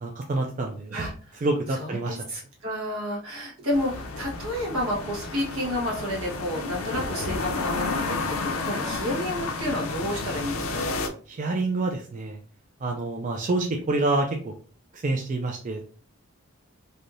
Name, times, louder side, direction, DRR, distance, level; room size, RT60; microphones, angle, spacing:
voice 1, 0.0-1.1 1.4-2.2 11.3-12.4 12.8-14.5 14.9-15.9, right 2 dB, 35° right, 2 dB, 0.4 m, -27 dB
voice 2, 0.9-11.0, left 1 dB, 80° right, -3 dB, 1.3 m, -31 dB
sound 1, 3.7-11.1, left 3 dB, 80° left, 0.5 m, -31 dB
3.3 x 2.6 x 2.5 m, 0.42 s
head